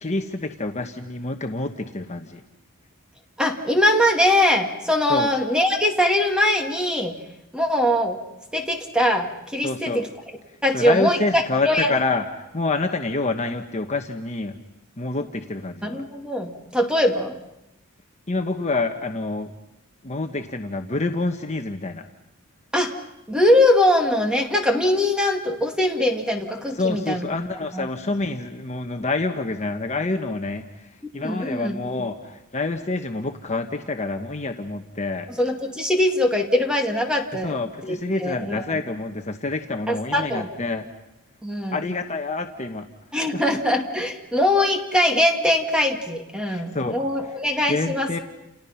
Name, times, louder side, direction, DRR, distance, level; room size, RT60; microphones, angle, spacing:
voice 1, 0.0-2.4 5.1-5.3 9.6-10.0 10.7-12.3 12.5-14.6 15.0-16.0 18.3-19.5 20.0-22.0 26.8-30.6 31.1-35.3 37.4-40.8 41.7-42.9 43.3-43.6 46.4-47.0 47.7-48.2, left 3 dB, 35° left, 5 dB, 1.2 m, -27 dB
voice 2, 3.4-7.2 7.5-8.2 8.5-10.1 10.6-11.9 15.8-17.3 22.7-22.9 23.3-27.3 27.7-27.9 31.0-31.8 35.3-38.8 39.9-40.5 41.4-41.8 43.1-48.1, left 1 dB, 5° right, 3 dB, 2.3 m, -22 dB
30.0 x 29.5 x 5.8 m, 0.90 s
head